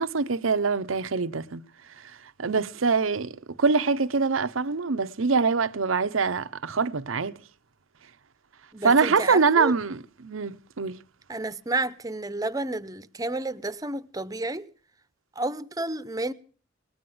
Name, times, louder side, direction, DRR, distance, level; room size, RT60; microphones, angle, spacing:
voice 1, 0.0-1.6 2.4-7.3 8.8-11.0, right 4 dB, 90° right, 0.8 m, -24 dB
voice 2, 8.7-9.7 11.3-14.7 15.4-16.3, right 2 dB, 20° right, 0.8 m, -31 dB
20.0 x 9.4 x 7.8 m
head